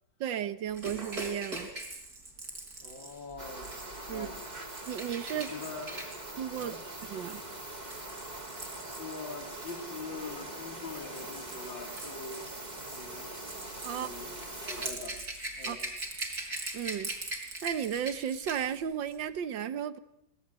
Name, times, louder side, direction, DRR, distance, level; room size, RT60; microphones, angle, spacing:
voice 1, 0.2-1.7 4.1-4.3 4.9-5.5 6.4-6.8 7.1-7.4 13.8-14.1 15.7-15.8 16.7-17.1 17.6-20.0, right 9 dB, 75° right, 13 dB, 1.8 m, -34 dB
Rattle / Rattle (instrument), 0.7-9.8 10.7-18.8 19.1-19.3, right 2 dB, 55° right, 5.0 m, -42 dB
voice 2, 2.8-3.8 4.1-4.4 5.3-6.2 6.6-6.8 9.0-12.5 12.8-13.3 13.9-14.3 14.6-15.2 15.6-15.8, left 4 dB, 85° left, 1 dB, 3.7 m, -43 dB
sound 1, 3.4-14.9, right 2 dB, 20° right, 2.8 m, -43 dB
25.5 x 18.5 x 8.2 m, 0.81 s
omnidirectional pair, 2.0 m